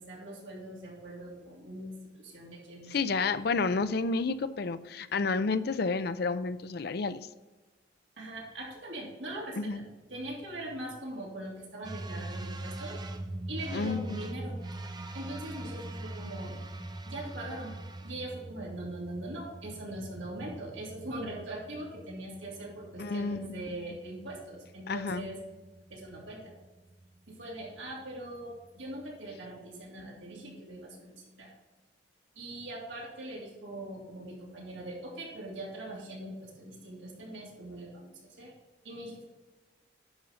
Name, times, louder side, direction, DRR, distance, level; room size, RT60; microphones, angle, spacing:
voice 1, 0.0-3.2 8.2-9.8 10.1-13.0 13.5-14.6 15.1-16.6 17.0-17.7 18.0-25.4 25.9-26.5 27.3-31.5 32.3-38.5 38.8-39.3, right 1 dB, 80° right, -3 dB, 3.1 m, -41 dB
voice 2, 2.9-7.3 9.6-9.8 13.7-14.2 23.0-23.6 24.9-25.3, left 4 dB, 55° left, 13 dB, 0.5 m, -30 dB
sound 1, 11.8-29.3, right 1 dB, 20° right, 0.6 m, -43 dB
10.5 x 5.5 x 4.2 m, 1.2 s
head